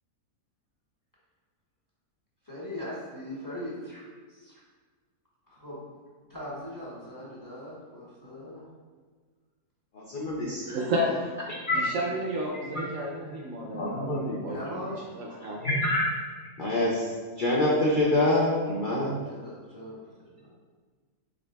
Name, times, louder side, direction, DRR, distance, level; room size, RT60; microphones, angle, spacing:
voice 1, 2.4-4.6 5.5-5.8 6.3-8.6 14.5-15.0 19.3-20.5, left 1 dB, 15° left, -8 dB, 1.0 m, -40 dB
voice 2, 9.9-10.8 11.7-11.8 12.7-12.8 13.2-13.4 13.7-14.6 15.4-16.1 16.6-17.1 17.4-19.2, left 1 dB, 55° left, -5 dB, 0.5 m, -26 dB
voice 3, 10.7-11.1 11.7-14.6 15.2-15.7, right 1 dB, 65° right, -1 dB, 0.9 m, -31 dB
5.2 x 3.7 x 2.2 m, 1.5 s
omnidirectional pair, 1.6 m